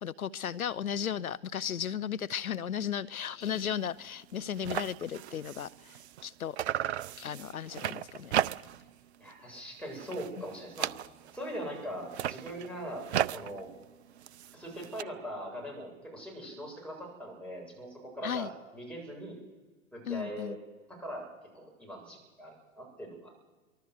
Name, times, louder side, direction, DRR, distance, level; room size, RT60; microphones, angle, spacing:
voice 1, 0.0-6.6 7.2-8.3 18.2-18.5 20.1-20.6, left 8 dB, 80° left, 18 dB, 0.6 m, -35 dB
sound 1, 3.4-3.7 4.0-4.1 4.3-6.3 6.6-8.9 9.3-9.6 9.9-11.5 12.0-15.0, right 11 dB, 50° right, 0.6 m, -35 dB
voice 2, 9.2-10.9 11.3-13.7 14.5-19.4 19.9-20.6 20.9-21.3 21.5-23.3, equal, ahead, -2 dB, 7.7 m, -41 dB
24.0 x 14.0 x 8.1 m, 1.3 s
figure-of-eight pair, 105°, 42 cm